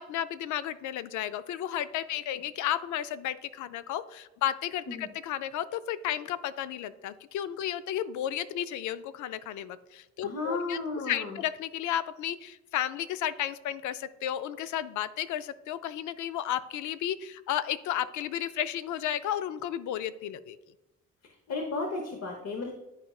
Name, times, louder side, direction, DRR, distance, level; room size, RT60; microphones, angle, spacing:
voice 1, 0.0-10.8 11.1-20.6, left 11 dB, 75° left, 14 dB, 0.5 m, -33 dB
voice 2, 10.2-11.4 21.2-22.7, left 3 dB, 55° left, 2 dB, 0.9 m, -34 dB
10.5 x 4.3 x 2.3 m, 1.0 s
cardioid pair, 90°, 30 cm